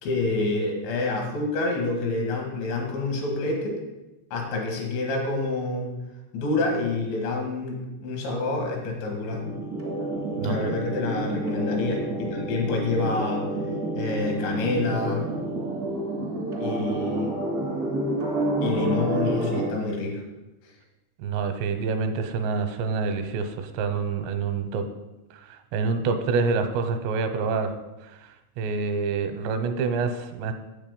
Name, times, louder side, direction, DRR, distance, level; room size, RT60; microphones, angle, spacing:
voice 1, 0.0-3.8 4.3-5.9 6.3-9.4 10.4-13.4 14.0-15.3 16.6-17.4 18.6-20.2, left 3 dB, 80° left, 1 dB, 4.1 m, -27 dB
sound 1, 9.3-19.7, right 2 dB, 70° right, 0.8 m, -29 dB
voice 2, 10.4-10.8 21.2-24.9 25.7-27.7 28.6-30.5, right 4 dB, 85° right, 8 dB, 2.9 m, -27 dB
9.0 x 7.5 x 5.2 m, 1.0 s
omnidirectional pair, 5.1 m